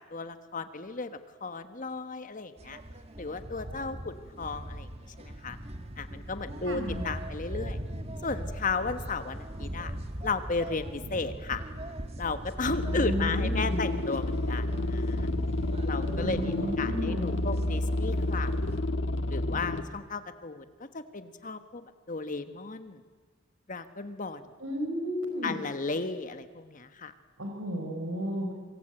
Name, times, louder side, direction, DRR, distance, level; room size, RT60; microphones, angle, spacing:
voice 1, 0.1-2.8 3.2-4.9 5.2-5.6 6.0-7.8 8.2-9.9 10.2-11.6 12.2-15.3 15.8-18.5 19.3-20.6 20.9-23.0 23.7-24.4 25.4-27.1, left 3 dB, 40° left, 10 dB, 1.3 m, -34 dB
sound 1, 2.6-18.8, right 1 dB, 30° right, 1.9 m, -40 dB
voice 2, 6.6-7.0 12.9-13.8 16.2-17.5 24.6-25.6 27.4-28.5, equal, 80° right, 4 dB, 4.4 m, -33 dB
sound 2, 12.7-19.8, left 2 dB, 65° left, 1.5 m, -30 dB
26.5 x 24.5 x 9.0 m, 1.3 s
head